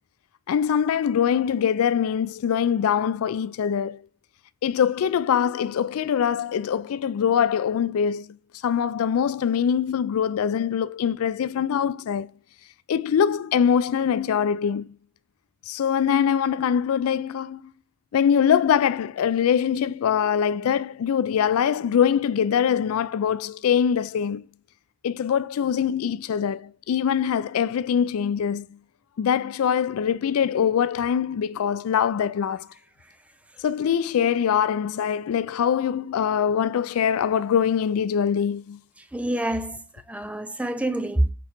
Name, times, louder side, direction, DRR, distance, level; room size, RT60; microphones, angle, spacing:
voice 1, 0.5-4.0 4.6-8.4 8.6-12.3 12.9-14.9 15.7-17.6 18.1-24.4 25.0-28.7 29.2-32.7 33.6-38.8, left 8 dB, 80° left, 0.3 m, -23 dB
voice 2, 39.1-41.3, right 1 dB, 5° right, 0.4 m, -27 dB
5.1 x 4.6 x 4.4 m
head